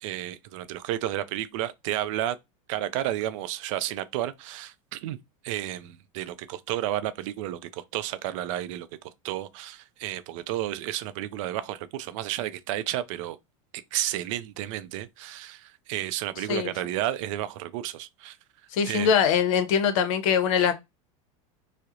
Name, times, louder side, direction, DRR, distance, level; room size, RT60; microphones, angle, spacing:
voice 1, 0.0-2.4 2.7-5.2 5.4-13.4 13.9-18.4 18.9-19.1, right 13 dB, 70° right, 0.4 m, -32 dB
voice 2, 18.7-20.7, left 7 dB, 75° left, 0.6 m, -22 dB
2.3 x 2.0 x 2.7 m
supercardioid pair, 130°, 17 cm